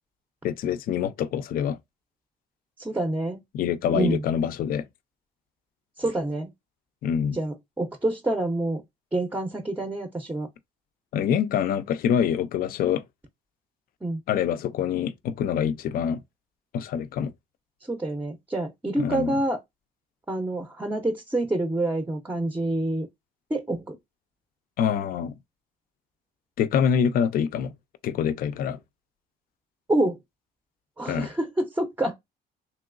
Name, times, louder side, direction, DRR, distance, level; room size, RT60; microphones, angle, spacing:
voice 1, 0.4-1.8 3.5-4.9 7.0-7.4 11.1-13.0 14.3-16.2 16.7-17.3 19.0-19.3 24.8-25.3 26.6-27.7 28.0-28.8 31.1-31.3, left 8 dB, 60° left, 0.4 m, -25 dB
voice 2, 2.8-3.4 3.9-4.2 6.0-6.5 7.3-8.8 9.1-10.5 14.0-14.2 17.9-19.6 20.3-23.1 23.5-24.0 29.9-30.2 31.0-32.1, right 1 dB, 10° right, 0.5 m, -27 dB
3.1 x 2.9 x 2.4 m
cardioid pair, 110°, 17 cm